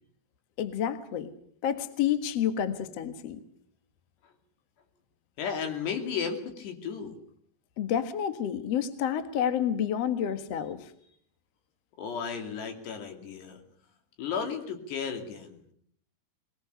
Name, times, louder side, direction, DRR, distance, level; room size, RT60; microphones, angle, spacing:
voice 1, 0.6-1.3 1.6-3.4 7.8-10.9, left 9 dB, 85° left, 9 dB, 1.4 m, -29 dB
voice 2, 5.4-7.2 12.0-13.6 14.2-15.6, left 6 dB, 65° left, 5 dB, 4.6 m, -34 dB
22.0 x 20.0 x 6.9 m, 0.65 s
omnidirectional pair, 5.5 m